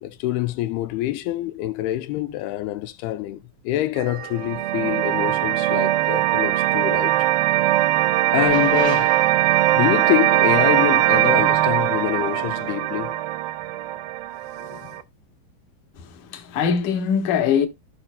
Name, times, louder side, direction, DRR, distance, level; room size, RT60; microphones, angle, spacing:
voice 1, 0.0-7.3 8.3-9.2 9.7-13.2 14.6-14.9, left 15 dB, 85° left, 2.6 m, -26 dB
sound 1, 4.0-15.0, right 14 dB, 75° right, 2.5 m, -21 dB
sound 2, 8.4-9.8 12.2-12.5, left 4 dB, 35° left, 1.3 m, -37 dB
voice 2, 16.0-17.7, left 7 dB, 60° left, 2.6 m, -22 dB
15.5 x 5.6 x 2.2 m
omnidirectional pair, 4.4 m